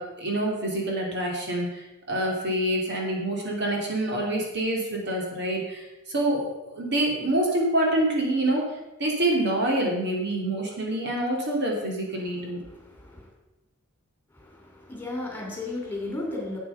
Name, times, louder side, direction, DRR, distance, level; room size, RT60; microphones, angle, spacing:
voice 1, 0.0-8.7 9.0-12.6, right 1 dB, 55° right, -1 dB, 3.1 m, -26 dB
voice 2, 12.7-13.3 14.3-16.6, left 2 dB, 10° left, -1 dB, 3.0 m, -35 dB
11.5 x 8.3 x 5.9 m, 1.0 s
head